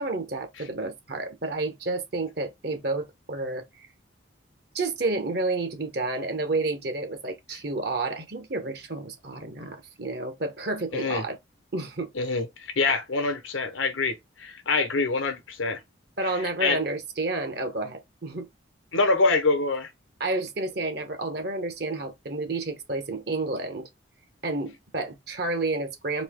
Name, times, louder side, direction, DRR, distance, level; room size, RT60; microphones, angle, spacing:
voice 1, 0.0-3.9 4.7-11.4 11.7-12.1 16.2-18.5 20.2-23.9 24.4-26.2, right 2 dB, 55° right, 1.0 m, -30 dB
voice 2, 10.9-11.2 12.1-15.8 16.4-16.8 18.9-19.9, left 3 dB, 90° left, 1.0 m, -25 dB
4.2 x 2.8 x 3.6 m
head